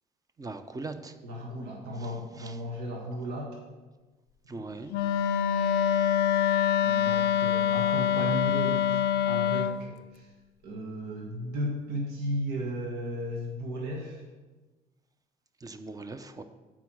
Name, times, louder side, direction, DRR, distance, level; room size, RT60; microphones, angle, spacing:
voice 1, 0.4-1.1 4.5-4.9 15.6-16.4, right 3 dB, 20° right, 10 dB, 0.6 m, -39 dB
voice 2, 1.2-3.6 5.2-5.4 6.8-10.3 10.6-14.2, equal, 75° right, -1 dB, 1.4 m, -35 dB
Wind instrument woodwind instrument, 4.9-9.8, left 9 dB, 75° left, 0.4 m, -25 dB
8.2 x 4.7 x 6.2 m, 1.2 s
cardioid pair, 110°, 17 cm